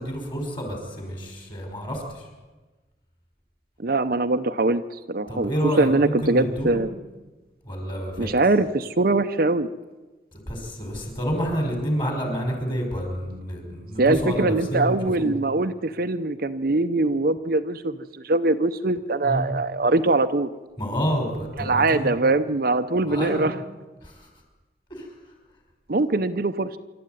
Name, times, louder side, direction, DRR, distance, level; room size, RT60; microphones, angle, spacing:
voice 1, 0.0-2.3 5.3-6.8 7.6-8.3 10.3-15.3 19.2-19.5 20.8-22.2 23.1-23.5 24.0-24.3 24.9-25.1, equal, 25° left, 2 dB, 5.3 m, -29 dB
voice 2, 3.8-4.8 5.1-5.5 5.8-6.9 8.2-9.7 14.0-20.5 21.6-23.5 25.9-26.7, right 2 dB, 50° right, 9 dB, 0.7 m, -22 dB
26.0 x 13.0 x 9.4 m, 1.2 s
head